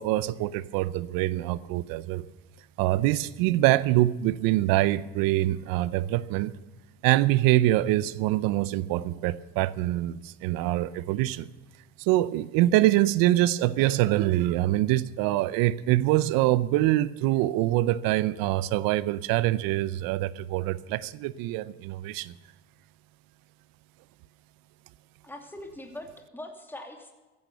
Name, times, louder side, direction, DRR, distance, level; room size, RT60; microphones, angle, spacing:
voice 1, 0.0-2.2 2.8-6.5 7.0-11.5 12.0-22.3, right 15 dB, 75° right, 18 dB, 0.7 m, -24 dB
voice 2, 25.2-27.1, left 1 dB, 5° left, 2 dB, 2.8 m, -42 dB
15.0 x 11.0 x 6.8 m, 1.2 s
hypercardioid pair, 65°, 35 cm